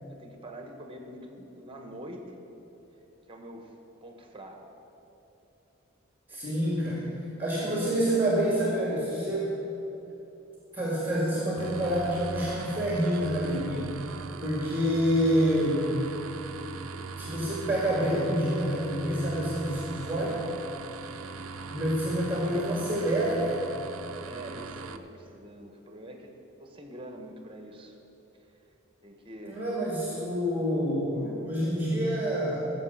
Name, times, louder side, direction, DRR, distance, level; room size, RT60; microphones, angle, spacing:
voice 1, 0.1-2.4 3.3-3.7 4.0-4.6 6.3-6.6 7.5-7.6 24.1-26.3 26.6-27.9 29.0-29.7, right 1 dB, 25° right, 3 dB, 1.3 m, -45 dB
voice 2, 6.3-7.0 7.4-9.5 10.7-13.9 14.4-15.9 17.2-20.4 21.7-23.6 29.4-32.6, equal, 10° right, -5 dB, 2.0 m, -27 dB
sound 1, 11.6-25.0, right 4 dB, 80° right, 0.6 m, -40 dB
15.5 x 6.7 x 7.2 m, 3.0 s
head